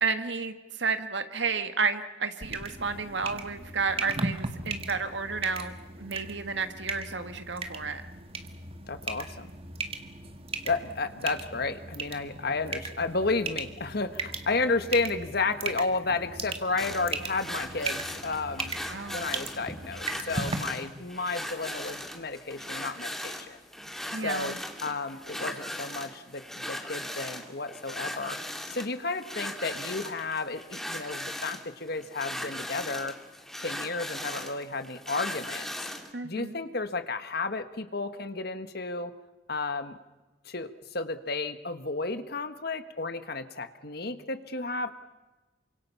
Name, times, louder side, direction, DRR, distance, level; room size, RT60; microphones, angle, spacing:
voice 1, 0.0-8.0 18.9-19.2 24.1-24.6 36.1-36.6, right 5 dB, 70° right, 8 dB, 1.8 m, -31 dB
sound 1, 2.4-20.6, right 3 dB, 30° right, 1.8 m, -37 dB
voice 2, 8.9-9.5 10.6-18.7 19.1-23.6 24.2-24.6 24.8-28.4 28.7-33.2 33.6-35.9 36.2-39.1 39.5-40.0 40.4-44.9, left 3 dB, 55° left, 9 dB, 1.6 m, -32 dB
sound 2, 16.8-36.1, left 1 dB, ahead, 2.5 m, -38 dB
28.5 x 25.5 x 5.7 m, 1.1 s
head